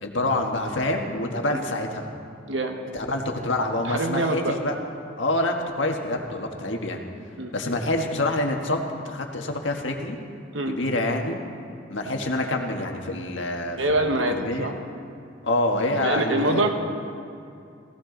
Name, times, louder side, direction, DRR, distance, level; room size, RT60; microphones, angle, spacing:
voice 1, 0.0-2.1 2.9-4.8 5.2-7.0 7.5-8.8 9.1-10.2 10.7-11.4 11.9-14.1 14.4-14.7 15.4-16.6, left 1 dB, 85° left, 2 dB, 1.6 m, -26 dB
voice 2, 3.8-4.6 7.4-7.5 10.5-10.8 13.8-14.7 16.0-16.7, right 2 dB, 85° right, 4 dB, 1.4 m, -25 dB
17.0 x 16.0 x 4.0 m, 2.5 s
head